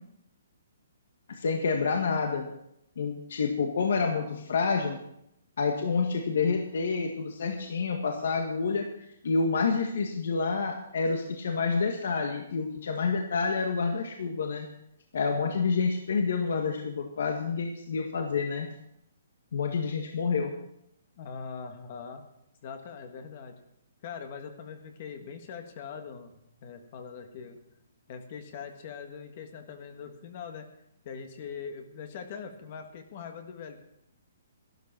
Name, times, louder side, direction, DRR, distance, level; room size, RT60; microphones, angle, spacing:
voice 1, 1.3-2.5 3.0-5.0 5.6-8.8 9.2-14.7 15.1-18.7 19.5-20.5, left 4 dB, 60° left, 3 dB, 1.9 m, -28 dB
voice 2, 21.2-22.2 22.6-23.5 24.0-27.6 28.1-30.7 31.0-33.8, left 6 dB, 30° left, 6 dB, 1.5 m, -42 dB
13.5 x 12.0 x 6.0 m, 0.78 s
hypercardioid pair, 175°, 0 cm